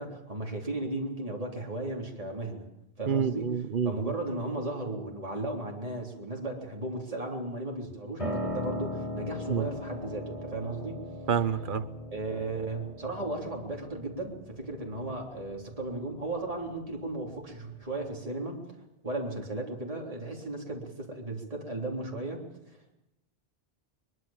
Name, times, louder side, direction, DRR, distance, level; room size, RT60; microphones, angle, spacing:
voice 1, 0.0-2.7 3.0-3.5 3.9-11.1 12.1-18.6 19.0-22.9, right 2 dB, 35° right, 3.6 m, -35 dB
voice 2, 3.1-4.1 9.5-9.7 11.3-11.9, right 7 dB, 55° right, 1.2 m, -28 dB
Piano, 8.2-18.1, left 1 dB, 35° left, 4.7 m, -39 dB
22.5 x 22.5 x 7.3 m
omnidirectional pair, 1.0 m